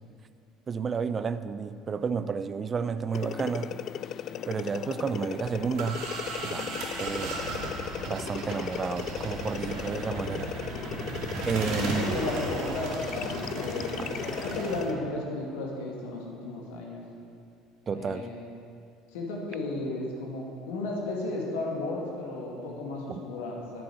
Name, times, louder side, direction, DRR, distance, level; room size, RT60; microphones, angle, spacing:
voice 1, 0.7-3.8 4.5-6.1 6.4-6.7 7.0-7.4 8.1-10.5 11.5-12.2 14.0-14.1 17.9-18.3 23.1-23.2, right 5 dB, 30° right, 13 dB, 0.5 m, -31 dB
sound 1, 3.1-15.0, left 9 dB, 45° left, 0.4 m, -37 dB
sound 2, 5.6-14.8, right 2 dB, 55° right, 2.2 m, -36 dB
voice 2, 11.8-14.1 14.4-17.0 17.9-18.5 19.1-23.8, left 2 dB, 65° left, -1 dB, 2.3 m, -34 dB
11.5 x 10.5 x 6.4 m, 2.4 s
figure-of-eight pair, 60°, 0 cm